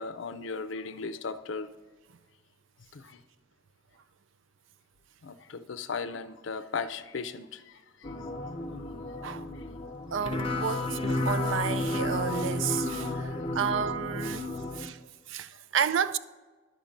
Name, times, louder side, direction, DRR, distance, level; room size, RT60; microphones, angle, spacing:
voice 1, 0.0-1.7 2.9-3.2 5.2-8.1 9.1-9.2 13.0-13.2, left 4 dB, 70° left, 0.5 m, -37 dB
sound 1, 8.0-14.9, left 2 dB, 25° left, 0.6 m, -32 dB
voice 2, 10.1-14.5 14.7-15.0 15.3-16.2, right 7 dB, 70° right, 0.4 m, -31 dB
10.5 x 7.2 x 5.2 m
head